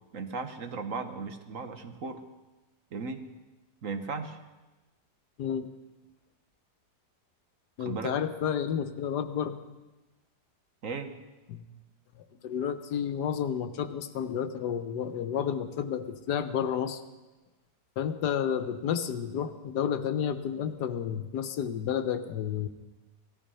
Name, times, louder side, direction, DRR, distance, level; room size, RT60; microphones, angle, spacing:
voice 1, 0.1-2.2 2.9-3.2 3.8-4.4 7.8-8.1 10.8-11.1, right 4 dB, 55° right, 7 dB, 1.4 m, -36 dB
voice 2, 5.4-5.7 7.8-9.6 11.5-11.6 12.1-17.0 18.0-22.7, left 8 dB, 85° left, 11 dB, 1.5 m, -31 dB
18.5 x 14.0 x 5.6 m, 1.1 s
omnidirectional pair, 1.7 m